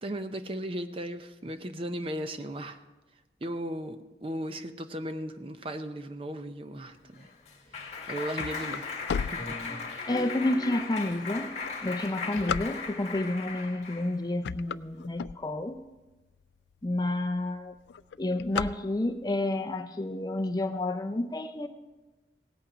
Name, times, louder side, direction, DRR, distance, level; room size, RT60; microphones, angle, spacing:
voice 1, 0.0-2.8 3.4-7.3 8.1-8.8 9.3-9.6, right 1 dB, 30° right, 9 dB, 0.6 m, -36 dB
Clapping, 6.9-14.2, left 4 dB, 35° left, 2.0 m, -37 dB
sound 1, 7.9-10.2 10.7-10.8 11.5-13.2 13.8-14.1 14.3-15.9 16.4-16.5 16.7-16.8 17.1-17.5 17.7-19.3, left 6 dB, 75° left, 0.3 m, -35 dB
voice 2, 10.1-15.9 16.8-17.7 18.2-21.7, left 1 dB, 20° left, 7 dB, 0.5 m, -30 dB
17.5 x 8.6 x 5.0 m, 1.2 s
head